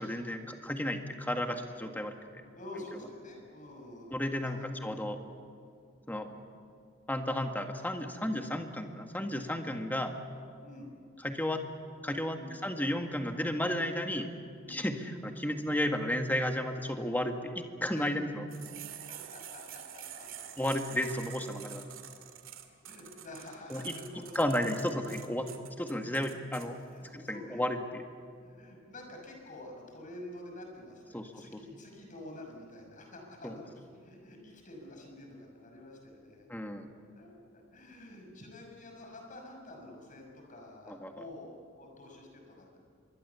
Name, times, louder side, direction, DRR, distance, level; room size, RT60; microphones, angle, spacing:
voice 1, 0.0-2.4 4.1-5.2 6.1-6.3 7.1-10.1 11.2-11.6 12.0-14.3 14.7-18.4 20.6-21.9 23.7-24.0 24.4-25.5 25.8-26.8 27.1-28.0 31.1-31.6 33.4-33.5 36.5-36.9 40.9-41.1, left 1 dB, 10° left, 4 dB, 1.7 m, -33 dB
voice 2, 2.5-4.8 10.6-10.9 12.3-12.6 14.6-15.0 17.9-18.1 19.1-20.5 21.1-21.3 22.9-24.7 26.9-27.6 28.4-36.5 37.1-42.8, left 1 dB, 40° left, 2 dB, 6.0 m, -48 dB
sound 1, 18.5-26.7, right 10 dB, 80° right, 2.3 m, -47 dB
26.0 x 22.5 x 7.1 m, 2.3 s
head